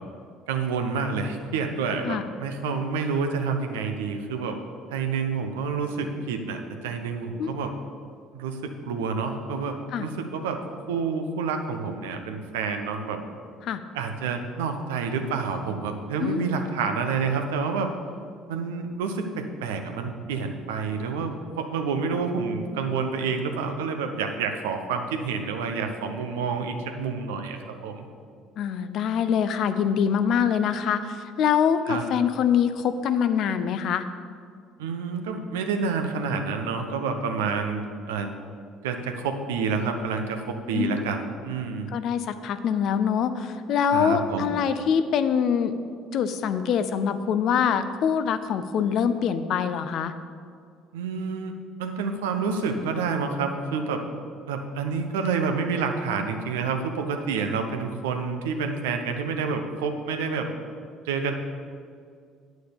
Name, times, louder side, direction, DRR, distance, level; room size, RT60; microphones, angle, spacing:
voice 1, 0.5-4.6 4.9-7.7 8.3-10.6 10.9-13.2 13.9-17.9 18.5-28.0 31.9-32.0 34.8-38.3 38.8-41.9 43.9-44.5 50.9-51.5 51.8-54.0 54.5-60.5 61.0-61.3, right 5 dB, 80° right, 5 dB, 0.9 m, -28 dB
voice 2, 28.6-34.1 40.7-41.0 41.9-45.7 46.1-50.1, left 7 dB, 60° left, 11 dB, 0.6 m, -24 dB
9.6 x 6.3 x 6.7 m, 2.1 s
hypercardioid pair, 55°, 0 cm